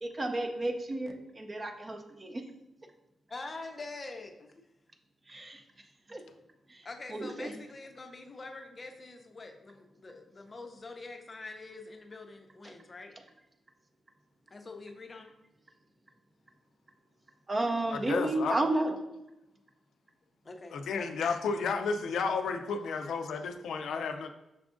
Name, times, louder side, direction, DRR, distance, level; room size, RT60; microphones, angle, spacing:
voice 1, 0.0-2.4 5.3-5.6 6.1-6.2 6.7-6.8 7.1-7.5 12.6-12.7 17.5-18.9, right 2 dB, 25° right, 4 dB, 0.5 m, -32 dB
voice 2, 3.3-4.5 6.8-13.1 14.5-15.3 20.4-21.1, left 3 dB, 30° left, 4 dB, 0.5 m, -45 dB
voice 3, 17.9-18.6 20.7-24.3, left 5 dB, 90° left, 6 dB, 0.4 m, -32 dB
5.9 x 3.6 x 2.4 m, 0.92 s
wide cardioid pair, 145°, 0 cm